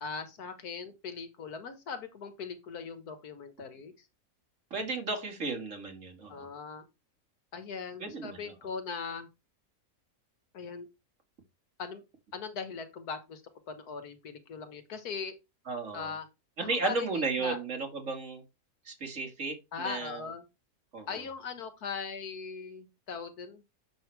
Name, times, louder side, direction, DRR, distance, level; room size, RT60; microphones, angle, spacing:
voice 1, 0.0-3.9 6.3-6.9 7.5-9.3 10.5-10.9 11.8-12.0 12.3-13.4 13.7-15.4 15.9-16.3 16.6-17.6 19.7-20.4 21.1-23.6, left 5 dB, 85° left, 1.8 m, -40 dB
voice 2, 4.7-6.5 8.0-8.5 15.7-16.1 16.6-18.4 18.9-20.3 20.9-21.2, right 3 dB, 55° right, 2.2 m, -34 dB
7.7 x 6.5 x 3.3 m
omnidirectional pair, 1.6 m